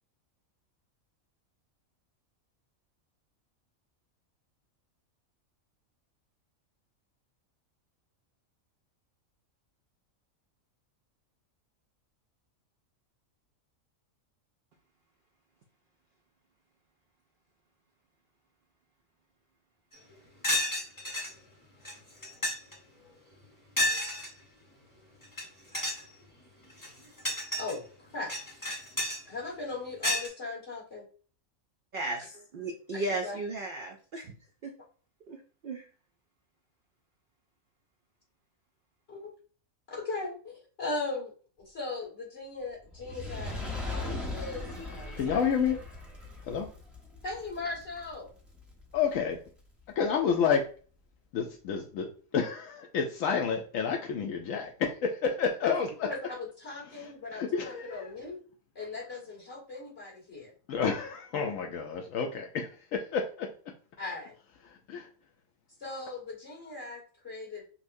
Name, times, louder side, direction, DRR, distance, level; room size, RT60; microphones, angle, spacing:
sound 1, 19.9-20.0 20.4-21.3 21.8-21.9 22.2-22.7 23.8-24.3 25.2-25.4 25.7-26.0 26.7-27.7 28.3-29.2 30.0-30.3, left 1 dB, 15° left, 0.9 m, -30 dB
voice 1, 27.6-28.4 29.3-31.0 32.9-33.4 39.1-39.3 40.0-41.3 41.7-45.8 47.2-48.3 55.6-55.7 56.0-58.4 58.7-60.5 64.0-64.3 65.8-67.6, left 3 dB, 45° left, -4 dB, 2.3 m, -38 dB
voice 2, 31.9-34.4 34.6-34.8 35.3-35.9, right 2 dB, 75° right, 3 dB, 0.5 m, -35 dB
Fire, 42.9-49.3 50.0-50.1, left 2 dB, ahead, 0.6 m, -39 dB
voice 3, 45.2-45.8 46.5-46.7 48.9-49.4 50.0-50.6 51.3-52.1 52.3-55.9 56.9-58.1 60.7-63.5 64.9-65.1, left 6 dB, 75° left, 2 dB, 0.9 m, -29 dB
5.5 x 2.0 x 2.6 m, 0.40 s
omnidirectional pair, 1.4 m